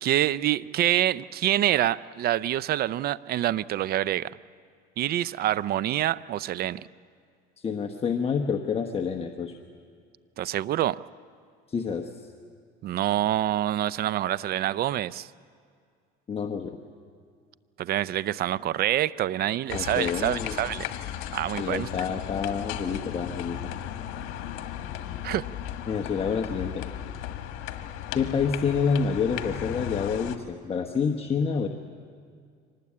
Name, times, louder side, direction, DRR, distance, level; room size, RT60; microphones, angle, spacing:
voice 1, 0.0-4.3 5.0-6.8 10.4-11.0 12.8-15.3 17.8-20.8 21.3-21.9 25.2-25.5, right 13 dB, 50° right, 19 dB, 0.5 m, -26 dB
voice 2, 7.6-9.5 11.7-12.1 16.3-16.8 19.7-20.6 21.6-23.7 25.9-26.9 28.1-31.7, left 6 dB, 30° left, 4 dB, 1.1 m, -28 dB
sound 1, 19.7-30.4, left 11 dB, 75° left, 1.5 m, -36 dB
24.5 x 19.5 x 8.5 m, 2.2 s
cardioid pair, 115°, 21 cm